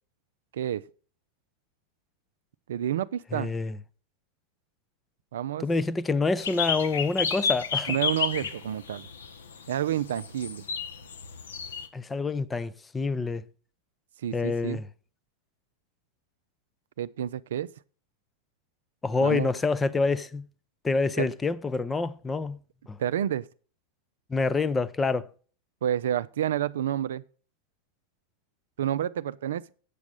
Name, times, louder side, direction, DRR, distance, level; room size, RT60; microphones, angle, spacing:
voice 1, 0.5-0.8 2.7-3.5 5.3-5.6 7.9-9.1 9.7-10.6 14.2-14.8 17.0-17.7 19.2-19.5 21.2-21.3 23.0-23.5 25.8-27.2 28.8-29.7, right 10 dB, 60° right, 0.4 m, -29 dB
voice 2, 3.3-3.8 5.6-7.9 11.9-13.4 14.3-14.9 19.0-20.4 20.8-22.6 22.9-23.0 24.3-25.3, left 3 dB, 15° left, 0.6 m, -27 dB
sound 1, 6.4-11.9, left 6 dB, 65° left, 1.0 m, -31 dB
8.3 x 7.1 x 6.4 m
figure-of-eight pair, 90°, 0 cm